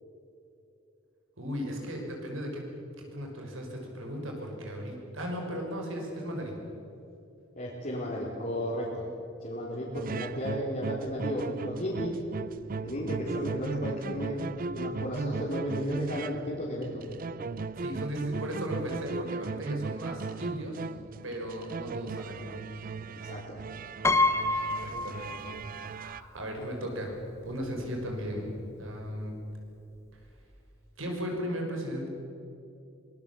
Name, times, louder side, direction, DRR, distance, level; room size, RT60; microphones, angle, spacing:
voice 1, 1.4-2.6 3.0-6.6 17.8-20.9 21.2-22.6 24.5-27.1 27.4-28.5 28.8-29.3 31.0-32.1, equal, 80° right, 1 dB, 5.9 m, -36 dB
voice 2, 7.6-9.0 9.4-12.2 12.8-14.5 14.8-17.0 23.1-23.6, equal, 45° left, -5 dB, 4.3 m, -34 dB
sound 1, 9.9-26.2, right 4 dB, 45° right, 0.5 m, -37 dB
Piano, 24.0-25.9 26.2-26.3 27.4-27.5 27.8-28.1, left 2 dB, 15° left, 1.0 m, -28 dB
24.5 x 21.0 x 7.3 m, 2.7 s
head